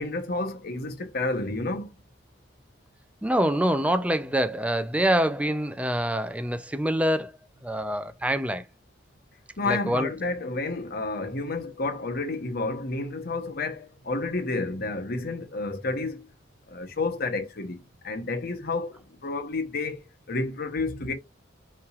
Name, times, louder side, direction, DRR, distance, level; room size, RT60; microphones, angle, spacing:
voice 1, 0.0-2.0 9.6-16.3 16.7-21.1, left 3 dB, 55° left, 0.9 m, -30 dB
voice 2, 3.2-7.3 7.6-8.6 9.7-10.1, right 1 dB, 5° right, 0.5 m, -25 dB
5.7 x 3.2 x 2.4 m
head